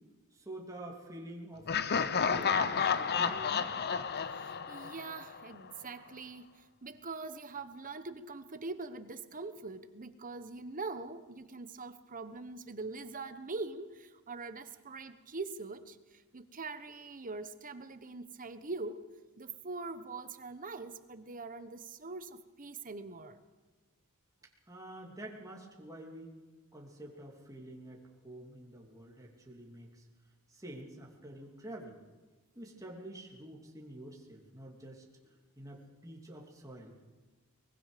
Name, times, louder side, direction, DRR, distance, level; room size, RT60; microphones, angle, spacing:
voice 1, 0.3-1.7 2.1-3.7 24.7-26.4 26.7-30.0 30.5-32.0 32.5-37.0, right 1 dB, 15° right, 3.0 m, -48 dB
Laughter, 1.7-5.5, left 6 dB, 50° left, 0.8 m, -31 dB
voice 2, 4.3-19.0 19.4-23.4, right 3 dB, 40° right, 1.2 m, -43 dB
23.5 x 21.0 x 5.2 m
head